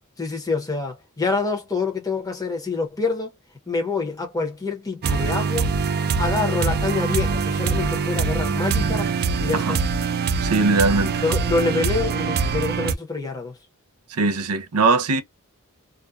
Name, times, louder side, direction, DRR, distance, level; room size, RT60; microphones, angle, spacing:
voice 1, 0.2-3.3 3.7-5.7 6.2-9.1 9.4-9.8 11.2-13.5, left 4 dB, 15° left, 0.9 m, -26 dB
sound 1, 5.0-12.9, right 5 dB, 45° right, 0.4 m, -23 dB
voice 2, 10.4-11.2 14.1-15.2, right 3 dB, 90° right, 0.6 m, -20 dB
2.5 x 2.2 x 2.3 m
head